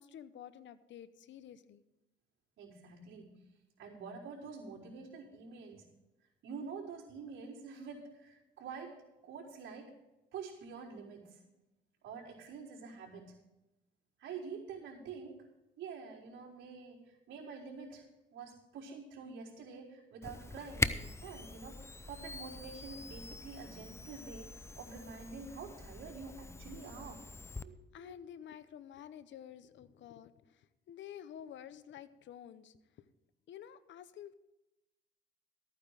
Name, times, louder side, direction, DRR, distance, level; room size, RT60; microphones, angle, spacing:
voice 1, 0.0-1.8 27.9-30.3 30.9-32.8 33.5-34.3, left 10 dB, 70° left, 14 dB, 0.8 m, -50 dB
voice 2, 2.6-3.4 3.8-5.8 6.4-9.0 9.2-9.9 10.3-11.4 12.0-13.4 14.2-15.4 15.8-18.0 18.3-27.2 27.6-28.2, right 5 dB, 75° right, -7 dB, 4.6 m, -47 dB
Camera, 20.2-27.7, left 3 dB, 15° left, 0.5 m, -42 dB
14.0 x 9.3 x 4.9 m, 0.98 s
cardioid pair, 90°, 20 cm